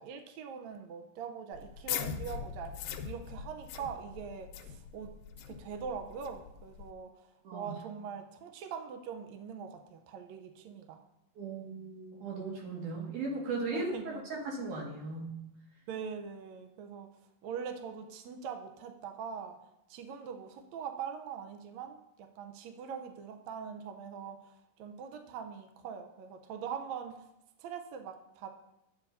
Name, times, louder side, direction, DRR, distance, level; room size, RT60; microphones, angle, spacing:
voice 1, 0.0-5.1 5.5-7.1 7.5-11.0 13.7-14.2 15.9-17.1 17.4-19.6 19.9-27.2 27.6-28.5, right 7 dB, 80° right, 5 dB, 1.6 m, -42 dB
sound 1, 1.5-6.9, left 8 dB, 85° left, 2.4 m, -41 dB
voice 2, 11.4-15.4, right 3 dB, 65° right, -2 dB, 3.1 m, -37 dB
13.5 x 8.4 x 2.6 m, 0.86 s
omnidirectional pair, 4.1 m